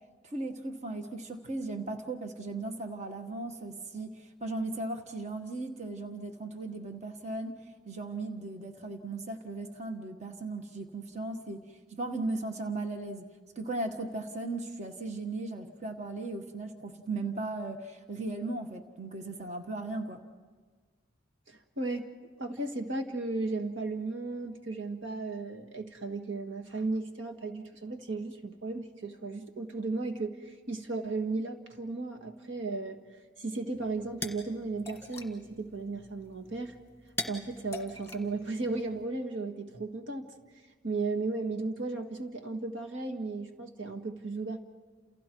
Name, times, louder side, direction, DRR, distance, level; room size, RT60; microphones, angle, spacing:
voice 1, 0.2-7.6 7.9-11.6 11.9-13.3 13.5-20.2, right 2 dB, 35° right, 5 dB, 1.5 m, -37 dB
voice 2, 21.5-22.1 22.4-33.0 33.4-36.7 37.3-40.3 40.8-44.6, right 3 dB, 85° right, 4 dB, 1.8 m, -35 dB
sound 1, 33.7-39.1, left 2 dB, 15° left, 1.7 m, -43 dB
29.5 x 28.5 x 4.6 m, 1.5 s
head